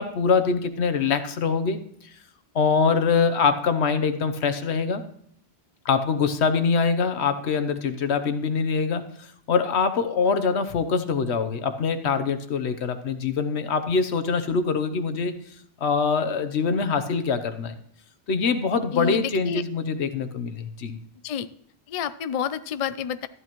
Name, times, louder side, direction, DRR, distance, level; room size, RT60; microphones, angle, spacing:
voice 1, 0.0-1.8 2.5-5.0 5.8-9.0 9.5-15.3 15.8-17.7 18.3-21.0, left 5 dB, 80° left, 10 dB, 1.2 m, -24 dB
voice 2, 18.9-19.6 21.2-21.5 21.9-23.3, left 8 dB, 50° left, 13 dB, 0.4 m, -29 dB
14.0 x 11.0 x 3.0 m, 0.66 s
omnidirectional pair, 1.1 m